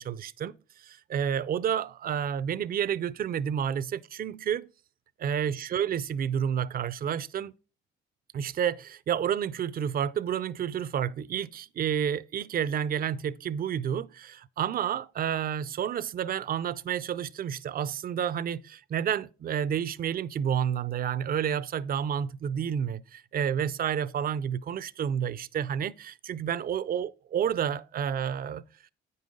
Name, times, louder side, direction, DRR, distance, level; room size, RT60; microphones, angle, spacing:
voice 1, 0.0-4.7 5.2-7.5 8.3-28.6, right 8 dB, 45° right, 0.5 m, -30 dB
8.9 x 5.5 x 5.1 m
cardioid pair, 90°, 20 cm